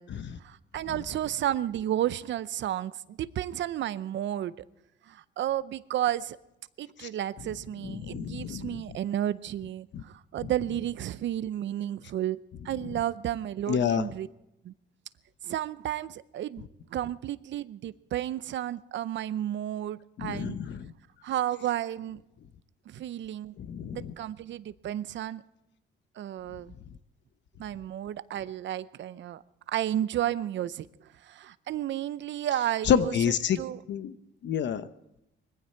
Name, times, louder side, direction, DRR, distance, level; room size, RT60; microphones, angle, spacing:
voice 1, 0.4-4.6 5.1-6.4 6.8-12.4 12.6-14.3 14.6-14.7 15.4-16.7 16.9-20.6 21.2-22.2 22.9-23.5 23.9-25.4 26.2-26.7 27.6-29.4 29.7-30.9 31.2-33.8, right 12 dB, 65° right, 17 dB, 0.7 m, -32 dB
voice 2, 7.8-8.8 9.9-10.0 13.7-14.1 20.2-20.9 23.6-24.1 32.8-33.6 33.9-34.1 34.4-34.9, left 8 dB, 65° left, 13 dB, 0.9 m, -28 dB
20.5 x 15.5 x 4.5 m, 0.88 s
cardioid pair, 90°, 20 cm